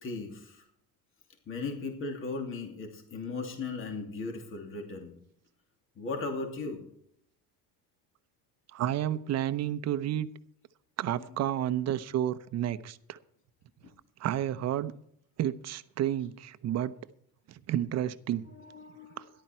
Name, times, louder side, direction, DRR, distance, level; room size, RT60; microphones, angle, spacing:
voice 1, 0.0-0.6 1.5-5.1 6.0-6.8 11.1-11.5 11.8-11.9 18.5-19.3, left 3 dB, 40° left, 2.8 m, -37 dB
voice 2, 8.7-10.3 11.0-13.2 14.2-14.9 15.4-16.9 17.5-18.5, right 11 dB, 50° right, 0.8 m, -31 dB
13.5 x 11.5 x 4.5 m
cardioid pair, 140°, 34 cm